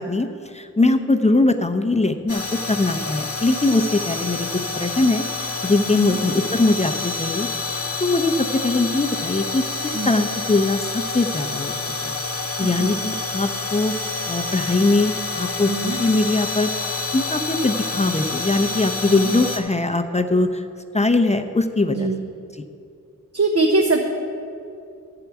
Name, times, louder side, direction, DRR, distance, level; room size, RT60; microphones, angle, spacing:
voice 1, 0.0-2.4 2.7-4.5 4.8-11.7 12.0-12.1 12.6-13.9 14.3-20.7 20.9-22.1, left 2 dB, 20° left, 6 dB, 0.6 m, -21 dB
voice 2, 0.8-1.1 5.9-6.2 9.9-10.1 12.6-12.9 15.7-16.0 19.1-19.3 21.9-22.2 23.3-24.0, right 2 dB, 50° right, 2 dB, 1.0 m, -22 dB
sound 1, 2.3-19.6, left 3 dB, 45° left, 1.2 m, -28 dB
12.0 x 4.8 x 8.0 m, 2.5 s
cardioid pair, 45°, 33 cm